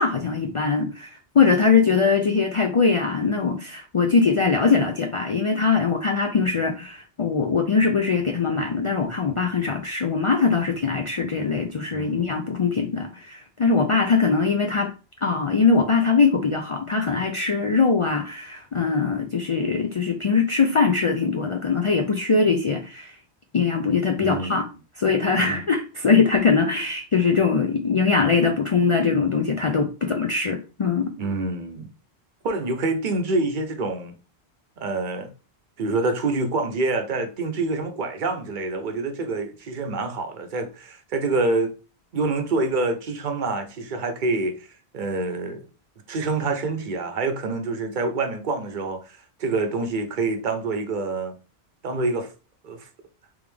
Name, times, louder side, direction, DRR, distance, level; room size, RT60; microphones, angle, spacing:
voice 1, 0.0-14.9 15.2-23.1 23.5-24.6 25.0-31.1, left 5 dB, 60° left, 0.3 m, -22 dB
voice 2, 11.9-12.3 24.2-24.7 25.4-25.6 31.2-31.9 32.4-34.1 34.8-35.3 35.8-41.7 42.1-44.7 44.9-45.7 46.1-51.4 51.8-52.3 52.6-52.9, right 3 dB, 50° right, 0.8 m, -26 dB
3.5 x 3.4 x 3.3 m
omnidirectional pair, 1.1 m